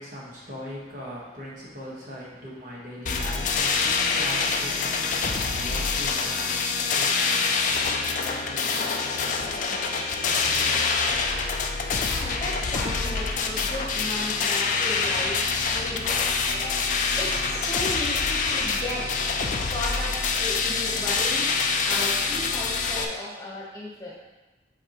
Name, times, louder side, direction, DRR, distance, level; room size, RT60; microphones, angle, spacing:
voice 1, 0.0-11.5, equal, 45° right, -6 dB, 1.5 m, -41 dB
sound 1, 3.1-23.1, left 4 dB, 45° left, 0.4 m, -26 dB
voice 2, 12.1-16.8 17.1-19.1 19.7-24.2, left 1 dB, 20° left, -5 dB, 1.3 m, -35 dB
7.8 x 4.4 x 3.1 m, 1.1 s
head